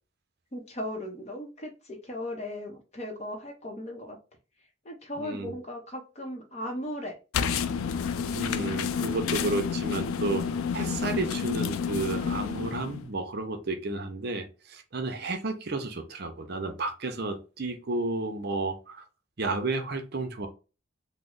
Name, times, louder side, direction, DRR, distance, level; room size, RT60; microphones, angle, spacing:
voice 1, 0.5-4.2 4.8-7.1, left 1 dB, 30° left, 0.7 m, -37 dB
voice 2, 5.2-5.6 8.3-10.5 10.7-19.0 19.4-20.5, right 3 dB, 50° right, 0.6 m, -32 dB
sound 1, 7.3-13.1, left 6 dB, 85° left, 0.3 m, -30 dB
3.1 x 2.0 x 3.7 m
head